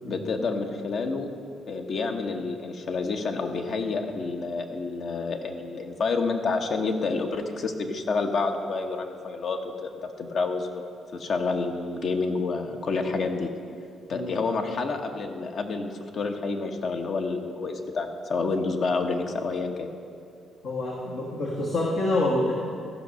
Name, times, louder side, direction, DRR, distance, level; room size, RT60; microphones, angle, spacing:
voice 1, 0.0-1.3 1.7-10.8 11.1-13.5 14.1-19.9, left 4 dB, 60° left, 4 dB, 1.0 m, -29 dB
voice 2, 20.6-22.5, left 1 dB, 75° left, -4 dB, 1.5 m, -27 dB
14.0 x 5.5 x 6.3 m, 2.4 s
cardioid pair, 90°, 0 cm